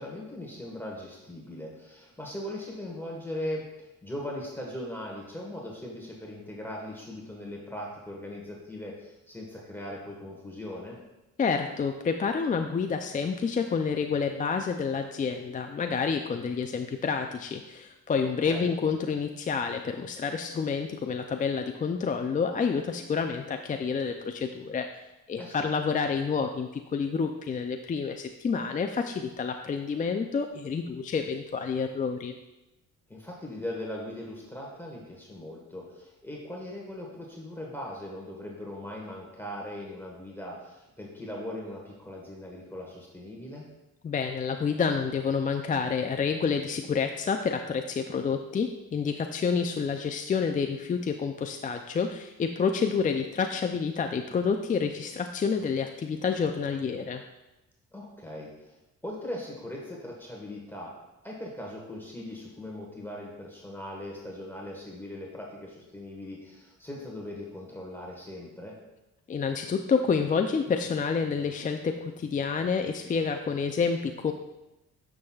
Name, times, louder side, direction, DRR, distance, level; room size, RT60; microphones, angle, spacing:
voice 1, 0.0-11.0 18.4-18.7 25.4-25.7 33.1-43.6 57.9-58.8 59.0-60.9 61.2-68.8, left 1 dB, 5° left, -3 dB, 1.4 m, -39 dB
voice 2, 11.4-24.9 25.3-32.3 44.0-57.2 69.3-74.3, left 5 dB, 25° left, 5 dB, 0.4 m, -29 dB
9.4 x 6.1 x 2.4 m, 0.98 s
cardioid pair, 90°, 30 cm